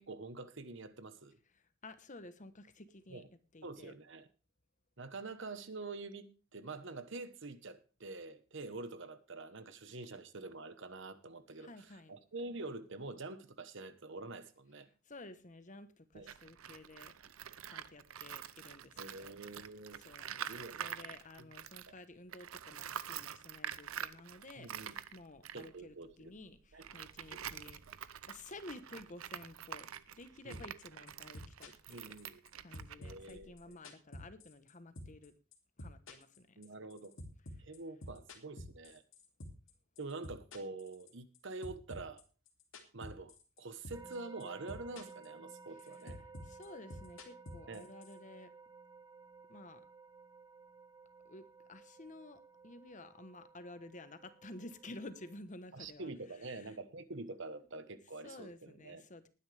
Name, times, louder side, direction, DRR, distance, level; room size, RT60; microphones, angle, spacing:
voice 1, 0.0-1.4 3.1-3.3 3.6-4.3 5.0-14.9 16.1-16.3 19.0-20.0 20.5-21.1 24.6-25.0 25.5-26.3 26.7-26.8 27.3-27.4 30.4-30.6 31.9-32.4 33.0-33.8 36.6-37.1 37.6-39.0 40.0-42.2 42.9-46.2 47.7-47.9 55.7-59.1, right 3 dB, 60° right, 12 dB, 1.2 m, -46 dB
voice 2, 1.5-3.2 3.5-3.9 11.6-12.1 15.0-17.1 17.7-19.3 20.0-27.8 28.3-32.0 32.6-35.3 35.8-36.6 45.9-46.1 46.4-48.5 49.5-49.8 51.2-56.1 56.4-56.8 58.2-59.3, left 2 dB, 35° left, 11 dB, 1.2 m, -52 dB
Tools, 16.2-22.0 22.3-33.8, right 9 dB, 90° right, 0.7 m, -47 dB
sound 1, 30.5-30.8 31.1-32.5 32.7-34.7 35.0-35.3 35.5-39.7 40.0-41.4 41.6-43.6 43.8-44.1 44.4-45.3 45.5-48.1, left 1 dB, 65° left, 2.7 m, -48 dB
sound 2, 43.9-55.4, right 4 dB, 20° right, 1.3 m, -56 dB
19.5 x 10.0 x 3.5 m, 0.34 s
head